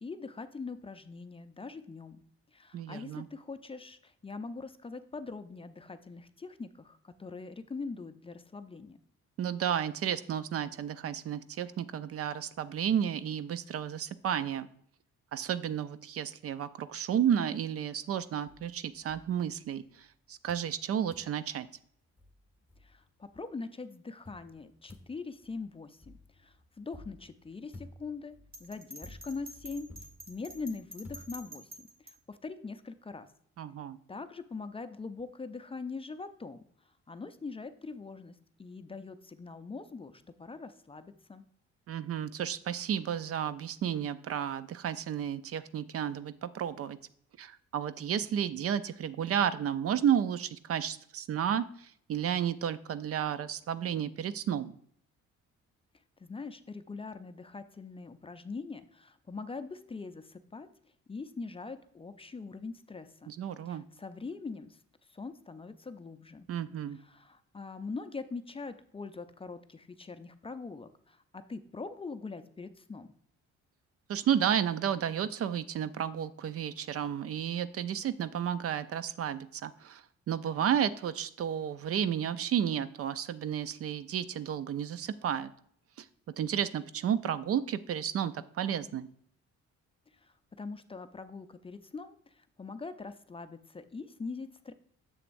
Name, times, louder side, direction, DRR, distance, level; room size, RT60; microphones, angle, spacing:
voice 1, 0.0-2.2 2.5-9.0 22.8-28.3 28.6-29.9 30.3-33.3 34.1-36.6 37.1-41.4 56.2-60.7 61.1-63.4 63.7-64.8 65.1-66.5 66.9-73.1 90.1-94.7, left 4 dB, 20° left, 9 dB, 0.4 m, -42 dB
voice 2, 2.7-3.3 9.4-14.7 15.3-21.7 33.6-34.0 41.9-47.0 47.4-54.7 63.3-63.8 66.5-67.0 74.1-85.5 86.0-86.1 86.4-89.1, right 9 dB, 50° right, 14 dB, 0.4 m, -32 dB
sound 1, 18.5-20.0 20.5-20.8 21.1-21.4 21.9-22.0 22.2-23.3 24.3-31.8, left 1 dB, 5° right, 1.3 m, -54 dB
Bell, 28.5-32.1, equal, 30° right, 1.4 m, -47 dB
7.1 x 6.7 x 2.6 m, 0.64 s
cardioid pair, 90°, 30 cm